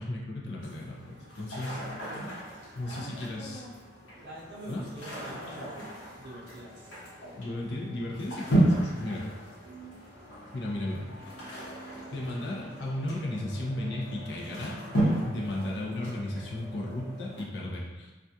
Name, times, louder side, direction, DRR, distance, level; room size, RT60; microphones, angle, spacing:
voice 1, 0.0-1.8 2.8-3.6 4.7-4.8 7.4-9.3 10.5-11.1 11.5-11.7 12.1-18.1, left 1 dB, 60° left, -3 dB, 0.5 m, -35 dB
sound 1, 0.6-17.4, right 1 dB, 85° left, 0.9 m, -34 dB
voice 2, 2.8-3.7 4.1-6.7 9.6-10.0, right 1 dB, 55° right, -4 dB, 0.6 m, -45 dB
2.4 x 2.2 x 2.7 m, 1.2 s
head